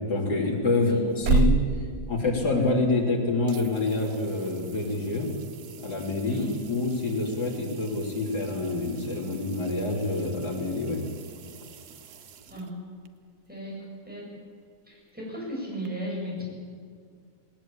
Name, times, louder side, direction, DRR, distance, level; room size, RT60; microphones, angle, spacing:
voice 1, 0.1-1.5 2.1-5.3 5.8-6.4 6.7-11.0, left 3 dB, 85° left, -2 dB, 3.9 m, -27 dB
voice 2, 0.7-1.1 6.2-6.6 12.5-12.7 13.5-14.3 14.9-16.4, right 1 dB, 5° right, -4 dB, 8.0 m, -36 dB
sound 1, 0.9-3.1 3.5-13.1 15.8-15.9, right 4 dB, 75° right, 1.5 m, -33 dB
19.0 x 19.0 x 8.7 m, 2.1 s
omnidirectional pair, 1.7 m